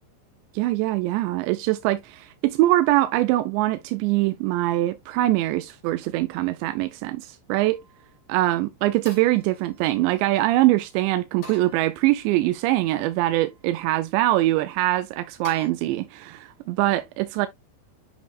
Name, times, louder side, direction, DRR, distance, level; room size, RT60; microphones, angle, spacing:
voice 1, 0.5-7.8 8.3-17.5, right 16 dB, 80° right, 2.7 m, -23 dB
sound 1, 7.7-8.2 9.1-10.4 11.4-12.5 13.1-13.7 15.4-15.7, left 2 dB, 35° left, 3.5 m, -48 dB
8.4 x 5.1 x 2.4 m
omnidirectional pair, 5.4 m